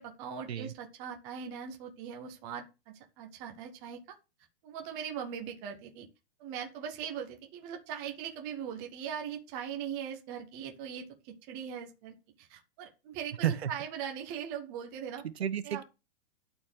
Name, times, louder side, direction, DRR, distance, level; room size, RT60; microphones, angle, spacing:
voice 1, 0.0-4.2 4.6-6.1 6.4-15.2 15.6-15.8, right 8 dB, 10° right, 0.4 m, -40 dB
voice 2, 15.2-15.8, right 9 dB, 70° right, 1.3 m, -31 dB
12.0 x 4.4 x 6.4 m
hypercardioid pair, 165°, 32 cm